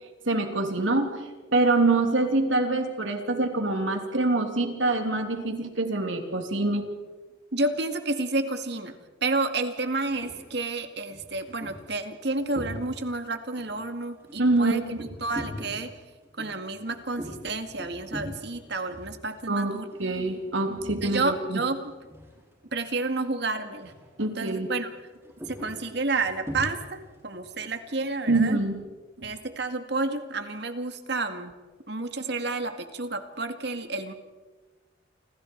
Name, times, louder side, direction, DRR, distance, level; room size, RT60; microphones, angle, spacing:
voice 1, 0.3-1.1 1.5-6.9 14.4-15.0 19.5-19.7 20.0-21.6 24.2-24.7 28.3-28.8, right 2 dB, 85° right, 4 dB, 3.2 m, -25 dB
voice 2, 7.5-14.8 15.2-15.9 16.4-19.9 21.0-21.8 22.7-23.9 24.4-24.9 25.5-28.6 29.2-31.5 31.9-34.1, right 3 dB, 60° right, 7 dB, 2.1 m, -30 dB
sound 1, 10.1-10.5 11.0-13.2 13.5-21.4 21.7-22.8 23.1-23.4 23.7-24.2 24.5-28.7, equal, 15° right, 5.7 m, -42 dB
28.5 x 26.0 x 4.7 m, 1.3 s
head